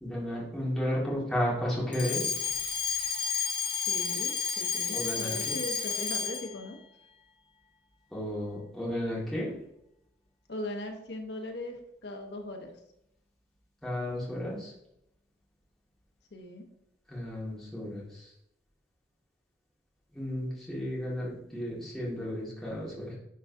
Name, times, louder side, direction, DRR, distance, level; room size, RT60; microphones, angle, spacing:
voice 1, 0.0-2.2 4.9-5.5 8.1-9.5 13.8-14.7 17.1-18.3 20.1-23.2, equal, ahead, -7 dB, 1.9 m, -33 dB
Alarm, 1.9-6.6, left 7 dB, 25° left, 0.5 m, -31 dB
voice 2, 3.9-6.8 10.5-12.7 16.3-16.6, left 1 dB, 70° left, 3 dB, 1.0 m, -39 dB
11.0 x 3.8 x 2.7 m, 0.82 s
head